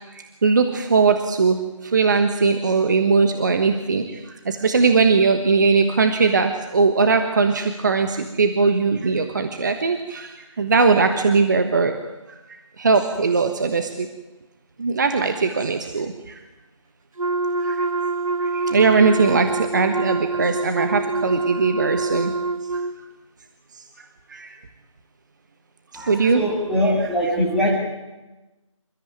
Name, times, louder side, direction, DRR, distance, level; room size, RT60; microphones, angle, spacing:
voice 1, 0.1-11.9 12.3-12.4 12.8-14.1 14.8-16.4 17.6-17.8 18.4-22.3 22.7-22.8 24.0-24.6 25.9-26.5 26.8-27.8, right 4 dB, 35° right, 7 dB, 1.3 m, -20 dB
Wind instrument woodwind instrument, 17.2-23.0, right 3 dB, 85° right, 1.3 m, -25 dB
voice 2, 25.9-27.8, equal, ahead, -7 dB, 2.4 m, -22 dB
27.0 x 14.0 x 9.4 m, 1.1 s
figure-of-eight pair, 165°, 17 cm